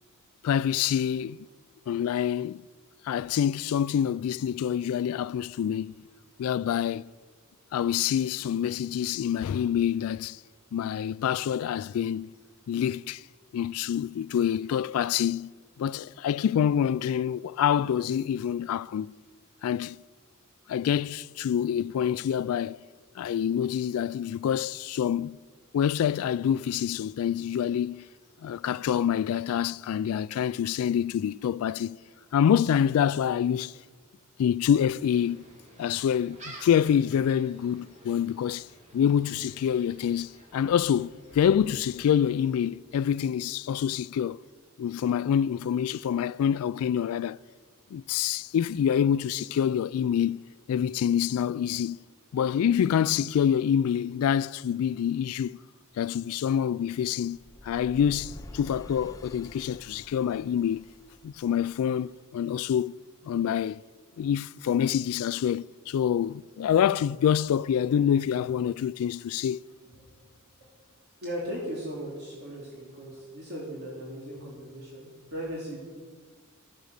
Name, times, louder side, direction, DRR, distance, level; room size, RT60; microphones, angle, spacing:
voice 1, 0.4-1.5 1.9-2.6 3.0-5.9 6.4-7.1 7.7-10.4 10.7-12.3 12.7-13.2 13.5-15.5 15.8-19.1 19.6-20.0 20.7-22.8 23.2-25.4 25.7-28.1 28.4-32.0 32.3-33.8 34.4-35.4 35.8-38.7 38.9-44.4 44.8-47.4 47.9-50.4 50.7-52.0 52.3-55.6 56.0-60.8 61.2-62.9 63.3-63.8 64.2-69.6, left 9 dB, 85° left, 0.3 m, -26 dB
Gull seagull, 34.9-42.7, right 1 dB, 35° right, 2.7 m, -52 dB
sound 1, 57.3-62.3, left 1 dB, 15° left, 0.7 m, -48 dB
voice 2, 71.2-75.9, equal, 50° right, 3.1 m, -37 dB
15.0 x 10.5 x 6.5 m
head